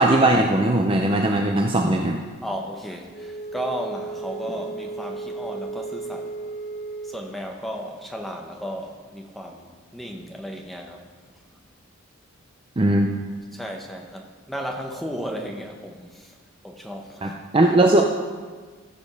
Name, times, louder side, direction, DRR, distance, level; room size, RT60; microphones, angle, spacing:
voice 1, 0.0-2.2 12.8-13.1 17.2-18.0, right 1 dB, 25° right, 2 dB, 0.5 m, -19 dB
voice 2, 2.4-6.3 7.0-11.0 11.5-11.6 13.5-16.4 16.6-17.5, equal, ahead, 1 dB, 0.9 m, -34 dB
Wind instrument woodwind instrument, 3.1-7.3, right 3 dB, 35° left, 1.0 m, -34 dB
15.0 x 5.2 x 5.4 m, 1.5 s
head